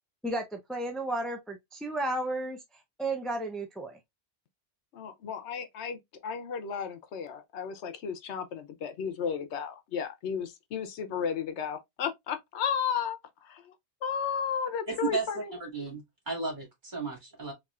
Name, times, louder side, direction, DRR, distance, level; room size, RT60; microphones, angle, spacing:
voice 1, 0.2-2.6 3.0-4.0, right 1 dB, ahead, 0.3 m, -33 dB
voice 2, 4.9-13.7 14.0-15.5, left 7 dB, 80° left, 1.0 m, -34 dB
voice 3, 14.9-17.5, right 4 dB, 45° right, 2.4 m, -34 dB
4.2 x 2.8 x 2.3 m
omnidirectional pair, 1.1 m